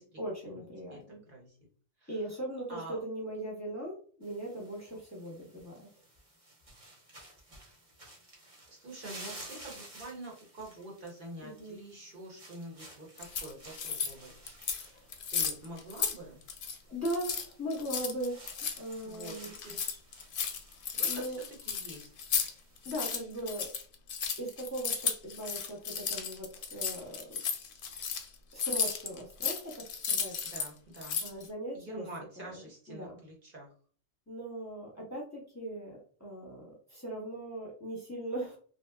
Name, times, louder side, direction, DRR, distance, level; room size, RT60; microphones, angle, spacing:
voice 1, 0.2-1.2 2.1-5.9 11.4-11.8 14.9-15.1 16.9-19.5 21.1-21.4 22.8-23.7 24.4-27.3 28.5-30.6 31.2-32.1 32.4-33.1 34.3-38.6, right 1 dB, 15° left, -2 dB, 0.9 m, -39 dB
sound 1, 4.2-23.2, right 1 dB, 35° right, 0.9 m, -54 dB
voice 2, 8.8-13.5 13.8-14.5 15.3-16.4 19.1-20.0 21.0-21.2 21.7-22.1 30.5-31.2 31.8-33.1 33.5-33.7, right 1 dB, 55° right, -1 dB, 1.1 m, -46 dB
sound 2, 13.2-14.1 14.5-14.9 15.1-16.2 16.4-16.8 17.0-22.5 22.8-30.7 30.9-31.5, left 6 dB, 60° left, 0.7 m, -34 dB
2.8 x 2.1 x 3.3 m, 0.43 s
omnidirectional pair, 1.1 m